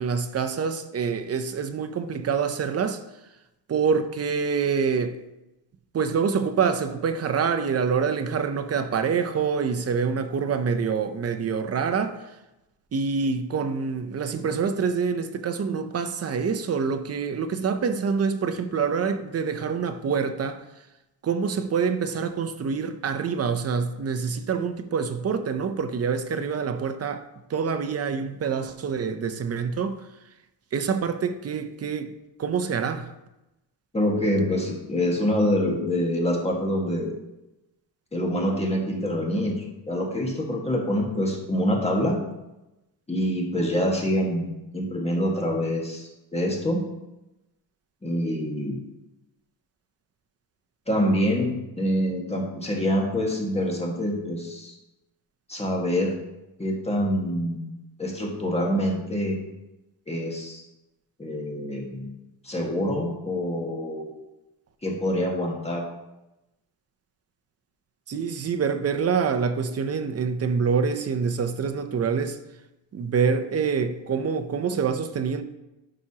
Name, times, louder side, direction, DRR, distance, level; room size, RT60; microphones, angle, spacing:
voice 1, 0.0-3.0 3.7-5.2 5.9-12.3 12.9-20.6 21.2-30.0 30.7-32.1 32.4-33.1 68.1-72.4 72.9-75.4, right 6 dB, 35° right, 0.6 m, -26 dB
voice 2, 33.9-37.1 38.1-39.6 39.9-42.2 43.1-44.5 44.7-46.8 48.0-48.8 50.9-54.7 55.5-56.1 56.6-57.7 58.0-59.4 60.1-60.6 61.2-62.1 62.4-64.1 64.8-65.8, equal, 15° left, 1.6 m, -26 dB
11.5 x 5.8 x 2.9 m
cardioid pair, 135°, 46 cm